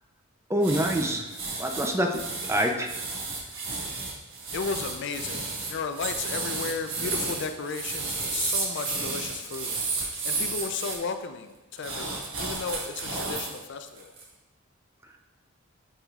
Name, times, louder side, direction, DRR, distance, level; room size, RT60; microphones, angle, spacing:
voice 1, 0.5-1.3 1.6-2.9, equal, 15° right, 3 dB, 0.4 m, -26 dB
sound 1, 0.6-11.0 11.8-13.6 14.0-14.2, right 3 dB, 65° right, 1.3 m, -32 dB
voice 2, 4.5-9.8 10.2-14.1, left 5 dB, 55° left, 8 dB, 0.4 m, -34 dB
8.8 x 5.6 x 2.4 m, 1.1 s
head